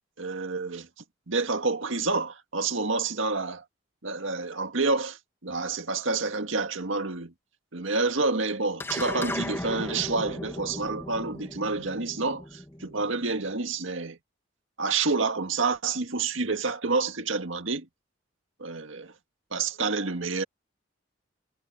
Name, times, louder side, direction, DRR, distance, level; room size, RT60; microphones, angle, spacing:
voice 1, 0.2-0.9 1.3-3.6 4.0-7.3 7.7-14.2 14.8-17.9 18.6-19.1 19.5-20.4, right 3 dB, 90° right, 1.8 m, -28 dB
sound 1, 8.8-13.4, left 1 dB, 10° left, 0.8 m, -36 dB
head